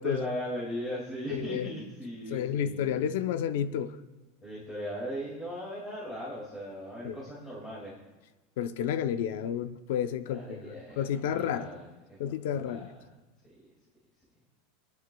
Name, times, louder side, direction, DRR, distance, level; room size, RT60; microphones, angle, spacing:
voice 1, 0.0-3.1 4.4-7.9 10.3-13.1, equal, 10° left, -7 dB, 2.2 m, -38 dB
voice 2, 1.3-1.7 2.3-4.0 7.0-7.2 8.6-11.7 12.2-12.9, left 9 dB, 65° left, 11 dB, 0.6 m, -31 dB
28.5 x 9.6 x 2.3 m, 1.2 s
supercardioid pair, 175°, 0 cm